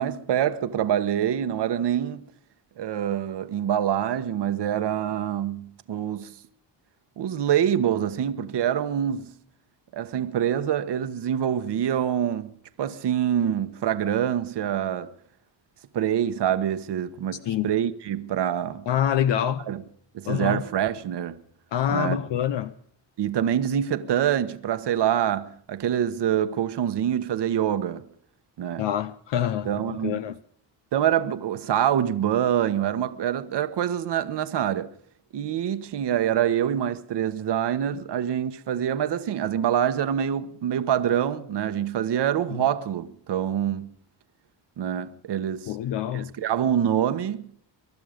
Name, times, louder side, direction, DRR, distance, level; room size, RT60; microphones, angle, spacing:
voice 1, 0.0-2.2 2.8-6.3 7.2-9.3 9.9-12.5 12.8-15.1 15.9-18.8 19.7-19.8 20.1-21.4 21.9-22.2 23.2-28.1 28.6-28.8 29.7-30.2 30.9-34.9 35.3-43.9 44.8-45.7 46.1-47.5, right 10 dB, 65° right, 1.3 m, -25 dB
voice 2, 17.4-17.8 18.9-19.7 20.3-20.6 21.7-22.7 28.8-30.4 45.7-46.3, left 10 dB, 70° left, 0.8 m, -26 dB
23.5 x 12.0 x 5.2 m
cardioid pair, 95°, 45 cm